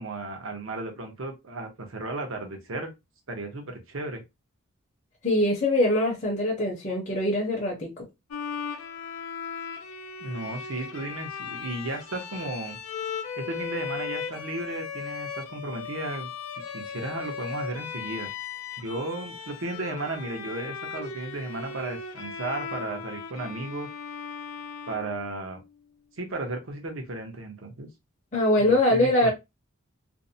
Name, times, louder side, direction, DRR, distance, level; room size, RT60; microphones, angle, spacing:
voice 1, 0.0-2.9 3.3-4.2 10.2-12.8 13.4-16.3 16.7-18.3 18.8-23.9 24.9-25.6 26.2-27.9 28.6-29.3, right 2 dB, 70° right, 0.7 m, -34 dB
voice 2, 5.2-8.0 28.3-29.3, left 1 dB, 35° left, 0.6 m, -23 dB
Bowed string instrument, 8.3-25.7, left 6 dB, 90° left, 0.4 m, -37 dB
2.6 x 2.0 x 2.5 m
head